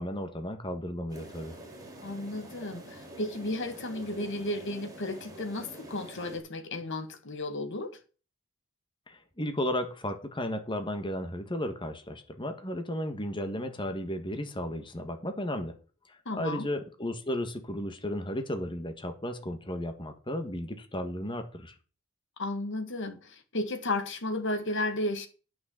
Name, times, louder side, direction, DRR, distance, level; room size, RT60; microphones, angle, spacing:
voice 1, 0.0-1.6 9.1-15.7 16.1-21.7, left 1 dB, 20° left, 1.4 m, -34 dB
sound 1, 1.1-6.4, right 1 dB, 15° right, 3.6 m, -47 dB
voice 2, 2.0-8.0 16.3-16.7 22.4-25.3, left 2 dB, 55° left, 1.9 m, -33 dB
9.3 x 6.3 x 7.2 m
head